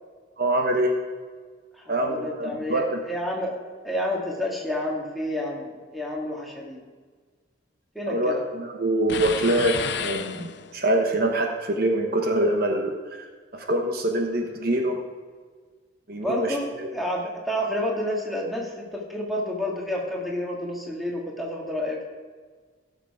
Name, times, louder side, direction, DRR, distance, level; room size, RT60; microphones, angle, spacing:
voice 1, 0.4-0.9 1.9-3.0 8.1-12.9 13.5-15.0 16.1-16.9, right 1 dB, 50° right, 3 dB, 1.1 m, -24 dB
voice 2, 1.8-3.6 3.8-6.8 8.0-8.4 16.1-22.0, left 1 dB, ahead, -2 dB, 1.9 m, -30 dB
sound 1, 9.1-10.9, left 7 dB, 60° left, 0.5 m, -31 dB
15.5 x 6.7 x 4.9 m, 1.5 s
head